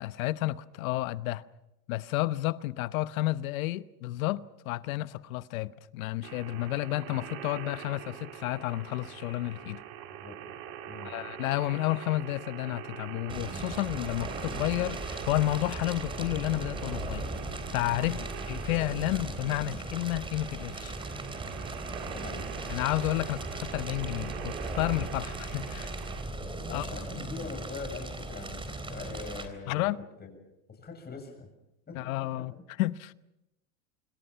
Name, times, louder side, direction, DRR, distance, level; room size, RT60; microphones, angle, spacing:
voice 1, 0.0-1.4 1.9-9.8 11.0-17.3 17.7-18.2 18.5-20.9 22.7-25.9 26.7-26.9 29.7-30.0 31.9-33.1, left 16 dB, 80° left, 1.0 m, -31 dB
sound 1, 6.2-26.2, right 10 dB, 65° right, 4.3 m, -44 dB
Fire, 13.3-29.5, right 2 dB, 10° right, 3.7 m, -38 dB
voice 2, 22.1-22.5 26.7-29.9 30.2-30.4 30.7-31.5 31.9-32.5, left 4 dB, 25° left, 7.9 m, -42 dB
26.5 x 24.5 x 5.8 m
supercardioid pair, 115°, 41 cm